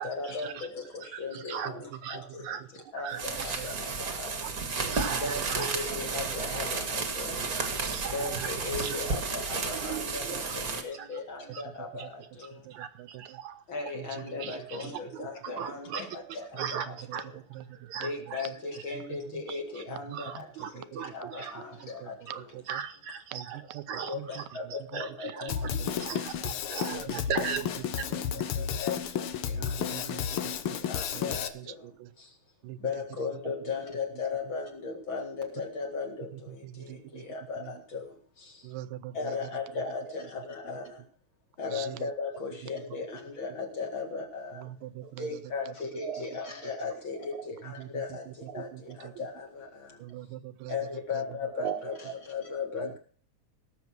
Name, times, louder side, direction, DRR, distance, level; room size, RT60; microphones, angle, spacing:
voice 1, 0.0-2.6 2.9-4.9 5.2-7.5 8.1-12.7 13.7-17.4 18.0-22.6 23.9-25.7 26.1-27.2 27.9-32.4 32.8-38.7 39.1-41.0 41.6-44.7 45.1-50.0 50.7-53.0, left 4 dB, 45° left, 3 dB, 2.3 m, -38 dB
voice 2, 1.1-1.7 2.0-2.2 2.4-2.6 2.9-3.2 3.6-3.7 4.1-4.2 4.4-4.5 4.9-5.7 7.6-8.5 8.8-9.0 9.4-9.5 9.7-10.6 10.9-11.1 11.5-11.6 12.7-13.6 14.4-14.8 15.1-16.0 16.6-16.9 17.1-17.2 17.5-18.5 19.5-19.6 20.1-21.6 22.3-24.4 24.7-27.7 28.0-28.1 39.8-39.9 45.0-45.1 46.0-46.2 48.5-48.7 51.3-52.2 52.8-53.0, right 8 dB, 70° right, 8 dB, 2.3 m, -38 dB
sound 1, 3.1-10.8, right 4 dB, 35° right, 1.6 m, -32 dB
voice 3, 12.5-13.4 16.6-16.7 17.1-17.2 17.5-17.6 18.0-18.1 20.1-20.2 20.7-20.8 22.0-22.1 22.5-22.8 23.3-23.5 23.7-23.8 24.1-24.3 25.4-25.5 27.1-27.2 28.6-28.8 29.5-30.4 30.6-30.8 31.1-31.2 31.6-31.7 32.0-32.1 32.6-32.8 36.6-37.2 37.6-37.7 38.6-39.3 41.7-42.0 44.6-45.3 47.8-47.9 48.7-49.1 50.0-50.8, right 14 dB, 90° right, 14 dB, 2.3 m, -42 dB
Drum kit, 25.5-31.5, left 8 dB, 75° left, 1.3 m, -32 dB
17.5 x 7.2 x 6.0 m, 0.43 s
omnidirectional pair, 3.7 m